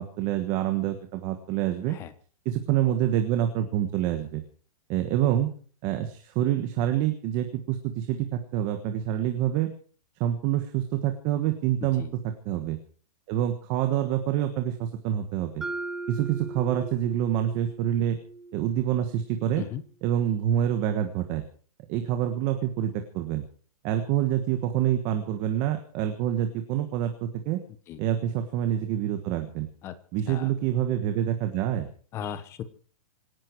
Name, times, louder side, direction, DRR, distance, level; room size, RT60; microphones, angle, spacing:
voice 1, 0.0-2.0 2.4-4.4 4.9-5.5 5.8-9.7 10.2-12.0 12.4-12.8 13.3-15.6 16.1-18.2 18.5-19.6 20.0-21.4 21.9-23.4 23.8-27.6 28.0-29.7 30.1-31.9, right 11 dB, 20° right, 7 dB, 1.4 m, -27 dB
voice 2, 11.8-12.1 19.6-19.8 27.9-28.0 29.8-29.9 30.3-30.5 32.1-32.6, left 9 dB, 15° left, 13 dB, 1.1 m, -36 dB
Mallet percussion, 15.6-19.6, right 3 dB, 5° right, 0.8 m, -39 dB
26.5 x 11.5 x 4.7 m, 0.43 s
hypercardioid pair, 180°, 19 cm